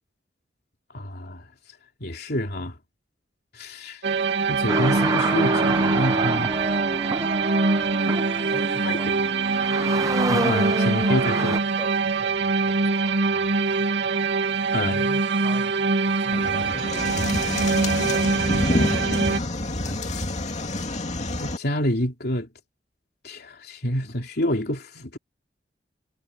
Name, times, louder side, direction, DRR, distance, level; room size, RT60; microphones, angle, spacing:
voice 1, 0.9-1.5 2.0-2.7 3.5-4.0 4.5-6.6 8.8-9.0 10.3-11.6 14.7-15.0 21.4-22.5 23.2-25.2, left 1 dB, 65° left, 3.2 m, -27 dB
sound 1, 4.0-19.4, right 4 dB, 90° right, 1.9 m, -24 dB
sound 2, 4.7-11.6, right 2 dB, 20° right, 0.6 m, -27 dB
voice 2, 8.5-9.8 11.1-13.9 14.7-20.4, equal, 5° left, 7.0 m, -44 dB
sound 3, 16.3-21.6, left 2 dB, 40° left, 2.4 m, -27 dB
head